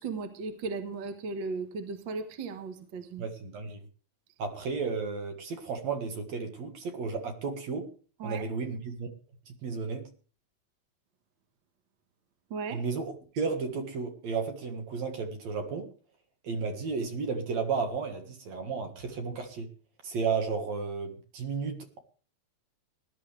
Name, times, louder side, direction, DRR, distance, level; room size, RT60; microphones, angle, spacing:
voice 1, 0.0-3.3 8.2-8.4 12.5-12.8, right 4 dB, 45° right, 7 dB, 1.9 m, -36 dB
voice 2, 3.2-3.8 4.4-7.9 8.2-9.1 9.6-10.1 12.7-15.9 16.4-19.7 20.0-22.0, right 5 dB, 65° right, 5 dB, 3.0 m, -33 dB
19.5 x 11.5 x 3.4 m, 0.40 s
omnidirectional pair, 3.3 m